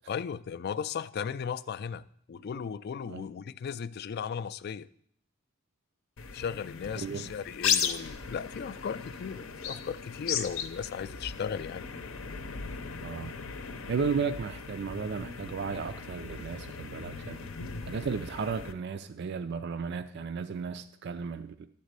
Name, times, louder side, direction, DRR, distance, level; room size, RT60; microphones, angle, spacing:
voice 1, 0.1-4.9 6.3-11.9, left 7 dB, 50° left, 0.3 m, -36 dB
sound 1, 6.2-18.7, left 7 dB, 80° left, 0.7 m, -37 dB
voice 2, 7.0-7.3 13.0-13.3 13.9-17.5 17.8-21.7, right 5 dB, 55° right, 0.4 m, -34 dB
11.5 x 4.1 x 8.0 m
head